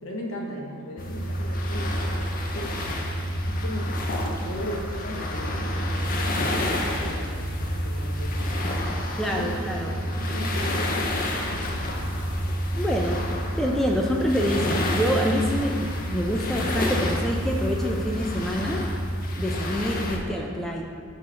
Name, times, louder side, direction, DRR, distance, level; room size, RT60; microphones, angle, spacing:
voice 1, 0.0-3.9 4.3-8.5 9.2-12.2, equal, 70° left, -1 dB, 1.0 m, -37 dB
sound 1, 1.0-20.2, equal, 40° left, 0.6 m, -28 dB
voice 2, 9.2-10.0 12.8-13.2 13.6-18.9 19.3-20.8, equal, ahead, -1 dB, 0.4 m, -26 dB
6.3 x 3.1 x 5.6 m, 2.4 s
head